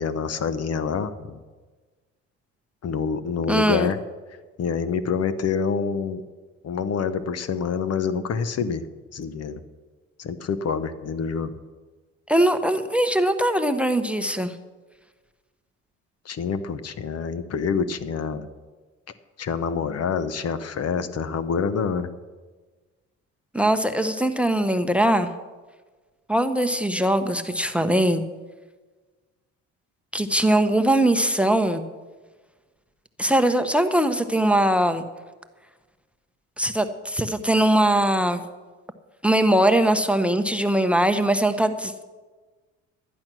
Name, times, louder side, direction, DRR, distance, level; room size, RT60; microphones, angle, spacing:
voice 1, 0.0-1.4 2.8-4.0 4.6-6.2 6.6-8.9 9.1-9.6 10.2-11.5 16.2-18.5 19.4-22.1, left 6 dB, 50° left, 13 dB, 1.0 m, -27 dB
voice 2, 3.5-3.9 12.3-14.5 23.5-25.3 26.3-28.2 30.1-31.8 33.2-35.0 36.6-38.4 39.2-42.0, right 1 dB, 5° right, 10 dB, 0.9 m, -21 dB
12.0 x 10.5 x 6.1 m, 1.3 s
supercardioid pair, 80°, 31 cm